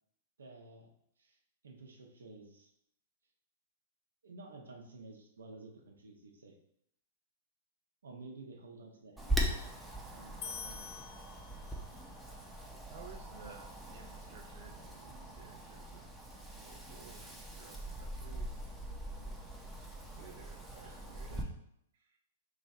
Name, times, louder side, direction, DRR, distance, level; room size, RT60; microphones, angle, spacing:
voice 1, 0.4-0.9 1.2-1.4 1.6-2.7 4.2-6.6 8.0-9.7 10.1-11.0 13.2-13.5 15.3-15.4 19.1-19.4 20.8-21.0 21.3-21.6, right 3 dB, 90° right, 2 dB, 0.8 m, -53 dB
Wind, 9.2-21.4, right 1 dB, 5° right, 0.6 m, -41 dB
sound 1, 10.4-12.0, left 6 dB, 45° left, 0.4 m, -46 dB
voice 2, 12.9-16.1 16.5-18.5 19.1-19.4 20.1-21.5 21.9-22.2, right 7 dB, 60° right, 2 dB, 0.4 m, -56 dB
3.1 x 2.6 x 4.1 m, 0.75 s
hypercardioid pair, 125°, 0 cm